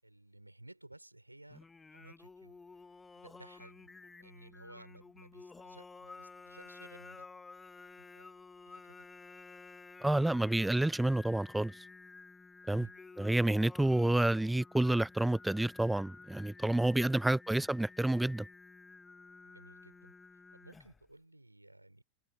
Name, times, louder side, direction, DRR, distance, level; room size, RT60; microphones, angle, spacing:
voice 1, 0.0-1.7 1.9-2.6 3.1-3.8 4.2-7.3 8.0-8.3 8.6-9.1 12.7-13.0 19.4-22.0, right 1 dB, 85° right, 6.2 m, -56 dB
Singing, 1.5-21.1, left 4 dB, 10° left, 2.2 m, -53 dB
voice 2, 10.0-11.7 12.7-12.9 13.2-18.5, right 1 dB, 5° right, 0.3 m, -29 dB
figure-of-eight pair, 90°, 0 cm